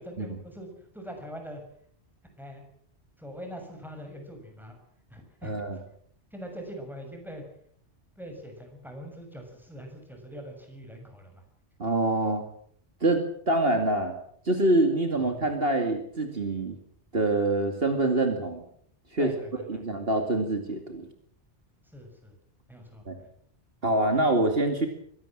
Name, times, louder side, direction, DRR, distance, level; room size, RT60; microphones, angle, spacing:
voice 1, 0.0-1.6 2.4-2.6 3.2-4.8 5.1-5.8 6.3-7.4 8.2-11.4 15.2-15.4 19.2-19.8 21.8-22.3 22.7-23.3, equal, ahead, 3 dB, 6.8 m, -43 dB
voice 2, 5.4-5.8 11.8-12.4 13.0-14.1 14.4-16.8 17.1-18.6 19.1-19.3 19.7-21.1 23.1-23.2 23.8-24.9, right 2 dB, 55° right, 5 dB, 2.7 m, -25 dB
23.5 x 17.5 x 7.6 m, 0.63 s
omnidirectional pair, 1.2 m